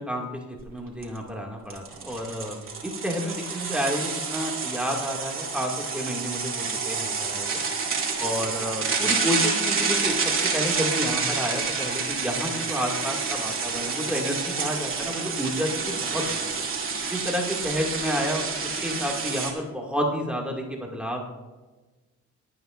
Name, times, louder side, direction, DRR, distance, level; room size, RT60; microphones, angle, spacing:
voice 1, 0.0-2.6 2.8-7.6 8.2-16.4 17.1-21.2, equal, 5° right, -1 dB, 2.1 m, -30 dB
sound 1, 0.6-0.7 1.0-1.2 1.7-19.5, right 4 dB, 45° right, 2.4 m, -28 dB
26.5 x 8.9 x 2.5 m, 1.2 s
cardioid pair, 90°, 30 cm